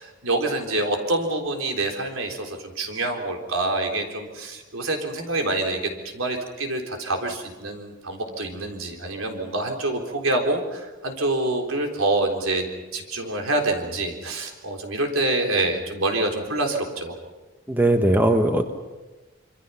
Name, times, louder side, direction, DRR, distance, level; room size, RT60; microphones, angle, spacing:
voice 1, 0.0-5.8 6.1-12.6 12.9-17.1, right 2 dB, 85° right, 3 dB, 3.9 m, -26 dB
voice 2, 17.7-18.8, right 1 dB, 10° right, 5 dB, 1.1 m, -19 dB
26.0 x 25.0 x 5.8 m, 1.2 s
head